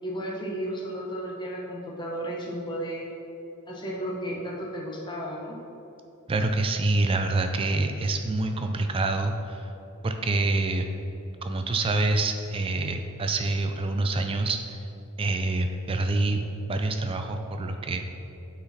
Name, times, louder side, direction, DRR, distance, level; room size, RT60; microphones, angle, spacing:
voice 1, 0.0-3.0 3.6-5.6, equal, 20° left, -3 dB, 0.8 m, -33 dB
voice 2, 6.3-9.7 10.0-10.9 11.4-14.8 15.2-18.0, right 2 dB, 25° right, 5 dB, 0.3 m, -26 dB
8.7 x 4.1 x 4.1 m, 2.9 s
head